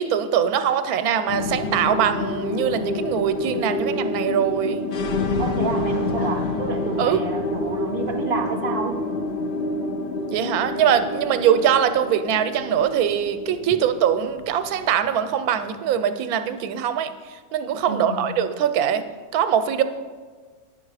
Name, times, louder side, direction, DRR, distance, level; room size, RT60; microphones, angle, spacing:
voice 1, 0.0-4.8 7.0-7.2 10.3-17.1 17.5-19.0 19.3-19.8, right 9 dB, 85° right, 10 dB, 1.1 m, -22 dB
sound 1, 1.3-15.9, left 2 dB, 60° left, 0.5 m, -28 dB
Laughter / Crowd, 5.0-8.8, left 3 dB, 80° left, 1.4 m, -42 dB
voice 2, 5.4-9.0 17.9-18.3, right 4 dB, 60° right, 4 dB, 0.5 m, -29 dB
9.7 x 5.6 x 4.8 m, 1.5 s
omnidirectional pair, 1.5 m